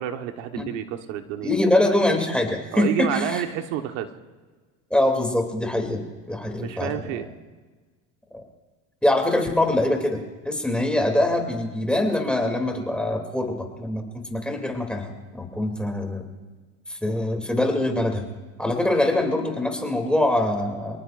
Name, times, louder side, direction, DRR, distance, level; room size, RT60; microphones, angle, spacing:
voice 1, 0.0-1.5 2.7-4.1 6.6-7.3, right 10 dB, 75° right, 6 dB, 1.4 m, -29 dB
voice 2, 1.4-3.4 4.9-7.1 9.0-16.3 16.9-18.3 18.6-21.0, left 1 dB, 5° left, 2 dB, 2.8 m, -24 dB
27.5 x 19.0 x 2.6 m, 1.4 s
supercardioid pair, 115°, 38 cm